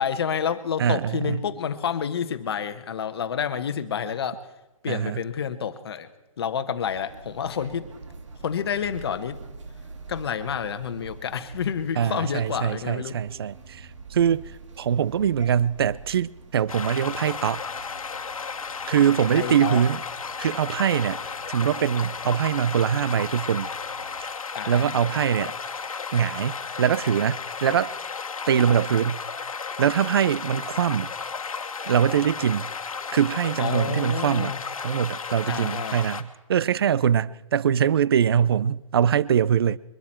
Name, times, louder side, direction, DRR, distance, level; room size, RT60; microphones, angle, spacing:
voice 1, 0.0-4.4 4.8-6.1 6.4-7.9 8.4-9.4 10.1-13.2 19.3-19.8 24.5-24.9 33.6-34.6 35.5-36.0, left 7 dB, 45° left, 1.2 m, -29 dB
voice 2, 0.8-1.4 4.9-5.2 12.0-14.5 14.8-17.6 18.9-20.0 20.4-21.2 21.5-23.7 24.2-24.3 24.7-25.5 26.1-27.9 28.5-29.2 29.8-31.1 31.8-32.7 33.1-34.6 34.8-39.8, right 8 dB, 45° right, 0.4 m, -23 dB
sound 1, 6.8-24.2, right 3 dB, 60° right, 1.8 m, -46 dB
sound 2, 16.7-36.2, left 5 dB, 85° left, 1.5 m, -34 dB
23.0 x 12.0 x 4.4 m
hypercardioid pair, 160°, 18 cm